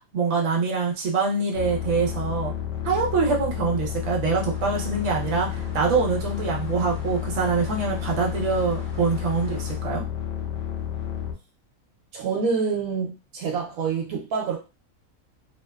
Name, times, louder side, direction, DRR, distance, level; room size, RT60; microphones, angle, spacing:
voice 1, 0.1-2.5 2.8-10.0, right 4 dB, 65° right, -1 dB, 1.0 m, -24 dB
sound 1, 1.5-11.3, left 10 dB, 65° left, 0.9 m, -31 dB
sound 2, 4.5-9.8, right 1 dB, 25° left, 0.8 m, -44 dB
voice 2, 12.1-14.6, right 5 dB, 85° right, 1 dB, 1.1 m, -27 dB
2.8 x 2.1 x 2.3 m, 0.28 s
omnidirectional pair, 1.5 m